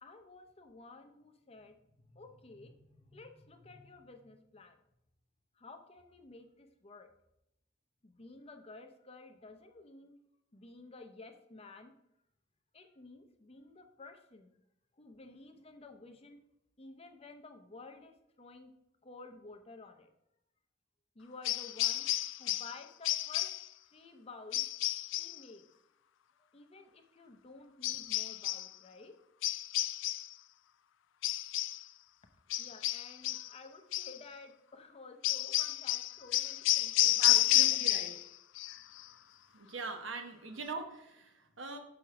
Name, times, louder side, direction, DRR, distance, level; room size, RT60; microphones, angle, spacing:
voice 1, 0.0-1.7 2.1-4.7 5.6-7.1 8.0-10.1 10.5-11.9 12.7-14.5 15.0-16.4 16.8-18.7 19.0-20.1 21.1-22.1 22.4-23.5 23.9-24.6 25.1-25.6 26.4-29.1 32.6-37.8, left 3 dB, 30° left, 5 dB, 0.7 m, -53 dB
sound 1, 21.4-22.8 23.0-23.7 24.5-25.4 27.8-28.7 29.4-30.3 31.2-31.8 32.5-33.5 33.9-34.2 35.2-38.3 38.6-39.0, left 16 dB, 65° left, 0.3 m, -31 dB
voice 2, 37.2-38.1 39.0-39.1 39.5-41.8, right 4 dB, 70° right, 6 dB, 1.0 m, -42 dB
6.3 x 4.5 x 5.8 m, 0.83 s
head